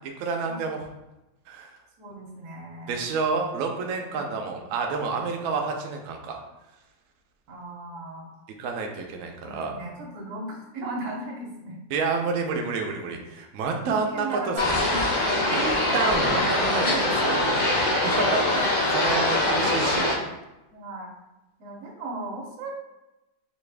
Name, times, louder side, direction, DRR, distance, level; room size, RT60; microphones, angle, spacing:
voice 1, 0.2-0.8 1.5-1.7 2.9-6.4 8.6-9.8 11.9-14.6 15.5-20.2, right 4 dB, 85° right, 2 dB, 0.7 m, -29 dB
voice 2, 2.0-3.1 4.1-4.3 7.5-8.3 9.4-11.8 13.8-15.0 15.4-15.5 18.4-18.5 20.7-21.1 21.6-22.7, right 2 dB, 65° right, -1 dB, 1.2 m, -37 dB
sound 1, 14.6-20.1, left 1 dB, 65° left, 0.5 m, -23 dB
4.0 x 2.4 x 3.3 m, 0.98 s
omnidirectional pair, 2.0 m